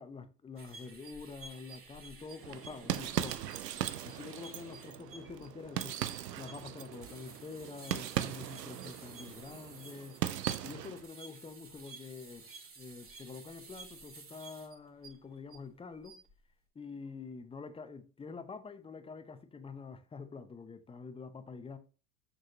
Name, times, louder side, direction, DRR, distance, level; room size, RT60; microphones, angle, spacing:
voice 1, 0.0-3.4 4.0-6.0 6.4-10.2 10.6-12.5 12.8-16.2 16.7-21.8, left 4 dB, 10° left, 0.7 m, -47 dB
sound 1, 0.6-15.6 15.9-16.3, right 4 dB, 25° right, 2.2 m, -53 dB
sound 2, 2.4-11.1, right 11 dB, 85° right, 0.7 m, -39 dB
6.3 x 6.3 x 2.9 m
hypercardioid pair, 85°, 48 cm